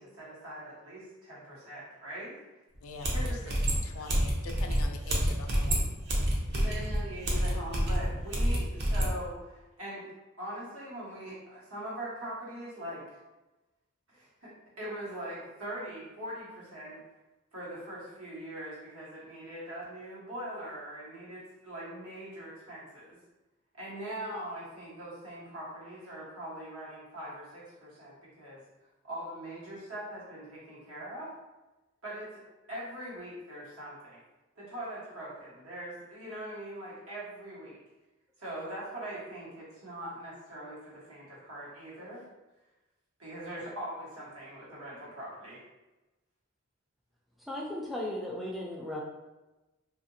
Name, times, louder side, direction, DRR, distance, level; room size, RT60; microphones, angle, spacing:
voice 1, 0.0-2.4 3.1-3.5 4.0-4.1 6.5-10.1 10.4-13.0 14.1-14.5 14.8-17.0 17.5-23.2 23.8-28.6 29.0-31.3 32.0-32.3 32.7-34.2 34.6-37.8 38.4-42.2 43.2-45.6, right 1 dB, 85° right, -7 dB, 1.2 m, -42 dB
sound 1, 2.7-2.8 3.0-9.1, equal, 50° right, 0.6 m, -28 dB
voice 2, 2.8-5.9, left 4 dB, 80° left, 4 dB, 0.4 m, -44 dB
voice 3, 47.5-49.0, left 1 dB, ahead, -3 dB, 0.3 m, -36 dB
2.7 x 2.5 x 2.6 m, 1.1 s
head